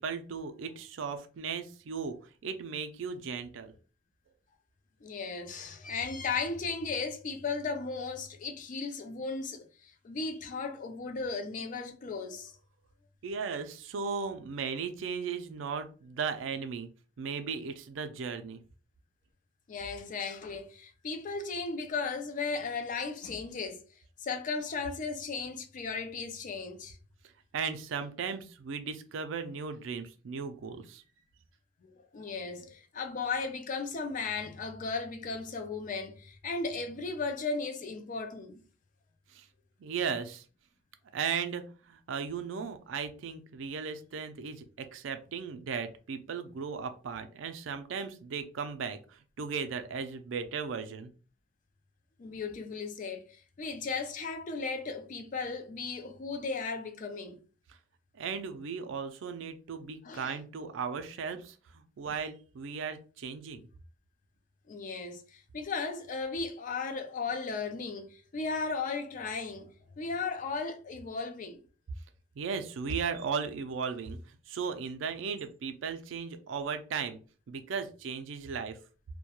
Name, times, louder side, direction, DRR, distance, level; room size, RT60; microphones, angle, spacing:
voice 1, 0.0-2.2 2.4-3.7 13.2-16.9 17.2-18.6 27.5-31.0 39.3-39.5 39.8-40.4 41.1-51.1 58.1-63.6 72.4-77.2 77.5-78.8, right 6 dB, 80° right, 0.4 m, -36 dB
voice 2, 5.0-12.5 19.7-23.8 24.2-27.0 32.0-38.6 52.2-57.4 60.0-60.4 62.0-62.1 64.7-71.6, left 4 dB, 45° left, 0.4 m, -36 dB
2.2 x 2.1 x 2.9 m
head